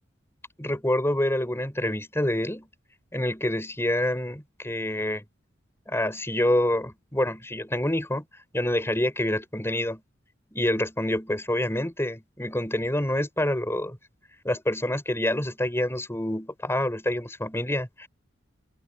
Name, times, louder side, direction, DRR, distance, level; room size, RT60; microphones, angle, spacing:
voice 1, 0.6-2.7 3.1-5.2 5.9-8.2 8.5-10.0 10.5-14.0 14.4-18.1, left 1 dB, 15° left, 5.7 m, -27 dB
head